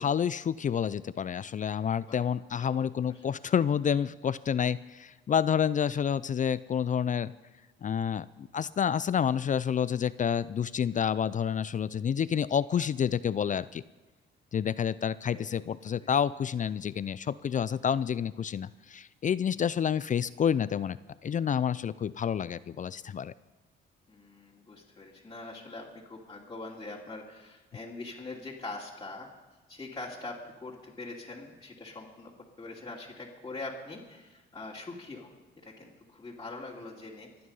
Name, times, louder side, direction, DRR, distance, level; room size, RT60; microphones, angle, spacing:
voice 1, 0.0-7.3 7.8-13.8 14.5-21.0 21.2-23.3, left 8 dB, 40° left, 17 dB, 0.5 m, -29 dB
voice 2, 15.2-15.6 15.9-16.1 24.1-29.3 29.7-32.3 32.6-35.3 35.6-37.3, left 2 dB, 20° left, -5 dB, 2.9 m, -43 dB
25.0 x 9.5 x 5.5 m, 1.2 s
cardioid pair, 90°, 20 cm